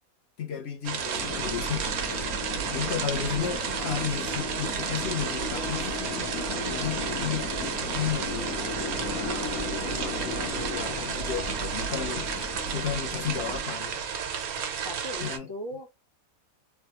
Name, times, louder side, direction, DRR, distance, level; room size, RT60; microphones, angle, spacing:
voice 1, 0.4-2.3 2.7-5.9 6.5-8.6 9.0-14.0 15.2-15.5, left 9 dB, 55° left, 0.8 m, -34 dB
sound 1, 0.8-15.4, right 7 dB, 90° right, 1.2 m, -33 dB
sound 2, 1.1-13.6, left 2 dB, 90° left, 1.3 m, -35 dB
voice 2, 14.6-16.0, left 1 dB, 25° left, 0.9 m, -39 dB
3.3 x 2.3 x 2.8 m
omnidirectional pair, 1.5 m